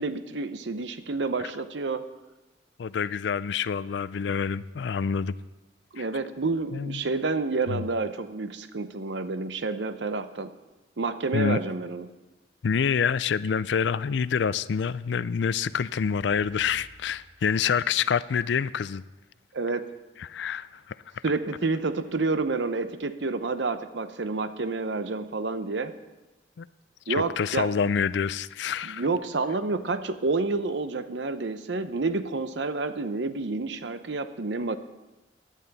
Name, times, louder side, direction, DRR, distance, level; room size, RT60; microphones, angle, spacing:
voice 1, 0.0-2.0 5.9-10.5 11.0-12.1 19.5-19.9 21.2-25.9 27.1-27.7 28.8-34.8, right 3 dB, 75° right, 11 dB, 0.7 m, -29 dB
voice 2, 2.8-5.4 6.0-6.1 6.7-7.0 7.7-7.9 11.3-11.6 12.6-19.0 20.2-21.0 26.6-26.7 27.1-29.0, left 6 dB, 75° left, 17 dB, 0.4 m, -27 dB
sound 1, 15.7-18.2, equal, 50° right, 4.0 m, -53 dB
16.0 x 11.0 x 4.1 m, 1.1 s
head